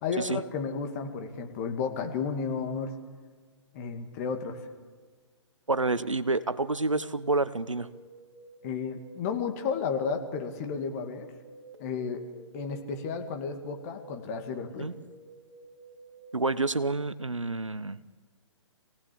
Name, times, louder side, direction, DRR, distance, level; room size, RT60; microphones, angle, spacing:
voice 1, 0.0-2.9 3.7-4.6 8.6-11.3 11.8-12.3 12.5-14.9, left 5 dB, 30° left, 5 dB, 2.3 m, -32 dB
voice 2, 5.7-7.9 14.8-14.9 16.3-18.0, right 3 dB, 85° right, 15 dB, 0.9 m, -28 dB
sound 1, 7.0-16.5, right 1 dB, 65° right, 2.8 m, -51 dB
23.5 x 17.5 x 8.6 m, 1.5 s
figure-of-eight pair, 130°, 16 cm